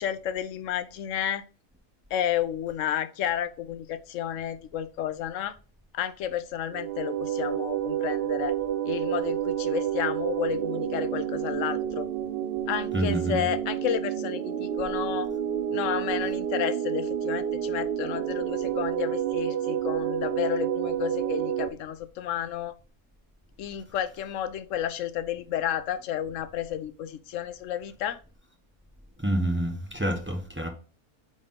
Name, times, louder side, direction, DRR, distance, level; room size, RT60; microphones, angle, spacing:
voice 1, 0.0-1.4 2.1-5.6 5.9-8.5 8.8-12.1 12.7-15.3 15.7-22.8 23.6-28.2, left 10 dB, 65° left, 0.8 m, -31 dB
sound 1, 6.7-21.7, right 10 dB, 55° right, 0.7 m, -29 dB
voice 2, 12.9-13.4 29.2-30.7, right 1 dB, 10° right, 0.8 m, -27 dB
5.0 x 4.0 x 5.5 m
omnidirectional pair, 1.6 m